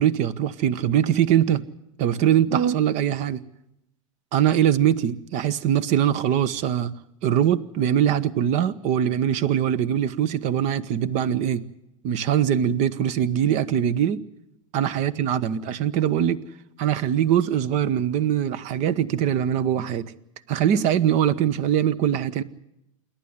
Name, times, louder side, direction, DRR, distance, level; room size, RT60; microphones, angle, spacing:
voice 1, 0.0-1.6 2.0-3.4 4.3-6.9 7.2-11.6 12.0-14.2 14.7-16.4 16.8-20.1 20.5-22.4, right 10 dB, 40° right, 18 dB, 1.1 m, -22 dB
27.5 x 11.5 x 9.6 m, 0.84 s
figure-of-eight pair, 95°, 17 cm